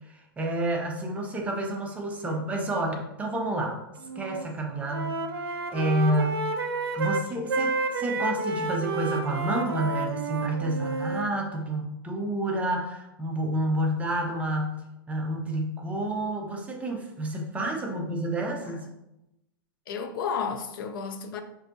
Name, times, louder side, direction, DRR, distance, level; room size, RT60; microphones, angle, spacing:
voice 1, 0.4-3.8 4.2-5.2 5.5-6.5 6.9-14.8 15.1-18.9, right 1 dB, 10° right, 0.5 m, -29 dB
Wind instrument woodwind instrument, 4.0-4.5 4.7-11.3, right 3 dB, 90° right, 0.5 m, -30 dB
voice 2, 18.5-18.8 19.9-21.4, left 6 dB, 65° left, 0.4 m, -33 dB
5.4 x 2.6 x 2.6 m
hypercardioid pair, 140°, 12 cm